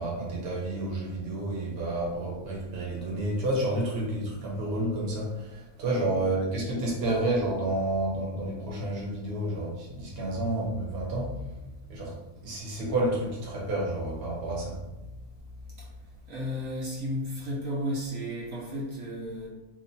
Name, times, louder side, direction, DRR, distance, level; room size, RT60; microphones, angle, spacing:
voice 1, 0.0-11.5 11.9-14.8, right 1 dB, 50° right, -4 dB, 1.1 m, -30 dB
voice 2, 16.3-19.5, equal, 70° right, -5 dB, 1.1 m, -33 dB
2.9 x 2.4 x 4.0 m, 1.0 s
omnidirectional pair, 1.5 m